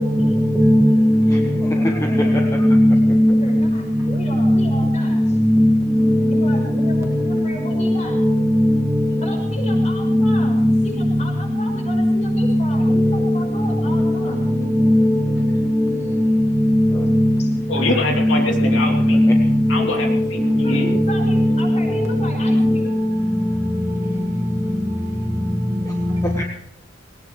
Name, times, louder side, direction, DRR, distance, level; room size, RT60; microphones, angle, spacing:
voice 1, 0.0-0.5 3.3-5.4 6.3-8.2 9.2-10.6 10.8-14.5 17.4-17.5 20.5-20.8 21.1-23.0, equal, 35° left, 0 dB, 5.9 m, -35 dB
voice 2, 0.6-1.4 2.6-3.3 4.4-4.6 5.5-5.7 8.2-8.3 14.8-15.1 19.1-19.4, equal, 15° right, 0 dB, 1.7 m, -14 dB
voice 3, 1.3-2.8 16.9-17.1 19.3-19.4 25.8-25.9 26.2-26.4, equal, 15° left, 1 dB, 1.3 m, -28 dB
voice 4, 17.7-19.2 19.7-20.9, left 2 dB, 70° left, 1 dB, 2.9 m, -24 dB
20.5 x 18.0 x 3.1 m, 0.76 s
head